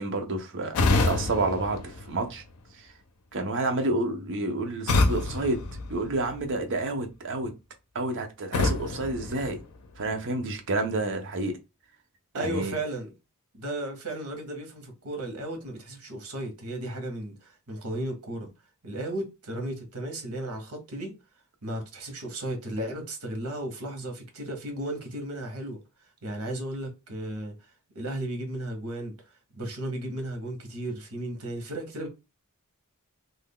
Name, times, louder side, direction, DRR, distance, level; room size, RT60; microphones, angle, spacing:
voice 1, 0.0-2.4 2.8-2.9 3.3-5.6 5.9-7.5 7.9-9.6 10.0-11.6 12.3-12.8, right 2 dB, 55° right, 0.7 m, -29 dB
sound 1, 0.7-2.7 4.9-6.6 8.5-10.1, left 3 dB, 75° left, 0.5 m, -27 dB
voice 2, 12.3-13.1 13.5-18.5 18.8-21.2 21.6-25.8 26.2-27.6 27.9-29.1 29.5-32.1, right 1 dB, 85° right, 1.2 m, -34 dB
2.6 x 2.3 x 3.5 m
head